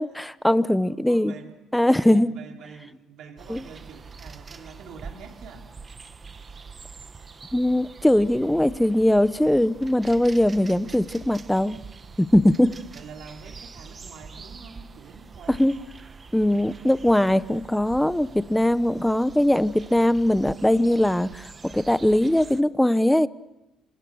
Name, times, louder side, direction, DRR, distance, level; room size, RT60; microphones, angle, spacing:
voice 1, 0.0-1.3 1.7-2.3 3.5-3.6 7.5-11.8 12.2-12.7 15.6-15.7 16.3-23.3, left 1 dB, 5° left, 15 dB, 0.9 m, -21 dB
voice 2, 0.8-1.5 1.9-5.7 12.6-15.9, right 5 dB, 70° right, 3 dB, 3.3 m, -46 dB
sound 1, 3.4-22.6, right 4 dB, 30° right, 1.2 m, -44 dB
27.5 x 27.0 x 6.4 m, 0.97 s
cardioid pair, 105°, 0 cm